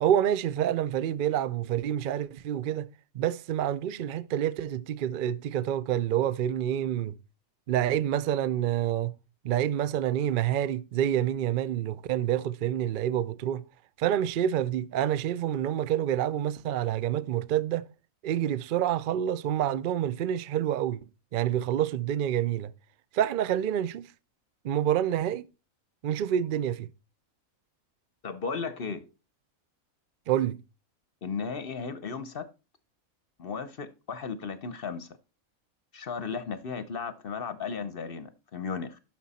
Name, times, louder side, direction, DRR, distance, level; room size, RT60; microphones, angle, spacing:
voice 1, 0.0-2.9 3.1-7.2 7.7-9.1 9.4-13.6 14.0-17.8 18.2-21.0 21.3-22.7 23.1-24.1 24.6-25.5 26.0-26.9 30.3-30.6, right 10 dB, 65° right, 0.5 m, -27 dB
voice 2, 28.2-29.0 31.2-32.4 33.4-35.1 35.9-39.0, left 5 dB, 50° left, 0.8 m, -35 dB
11.0 x 6.1 x 4.1 m
omnidirectional pair, 1.4 m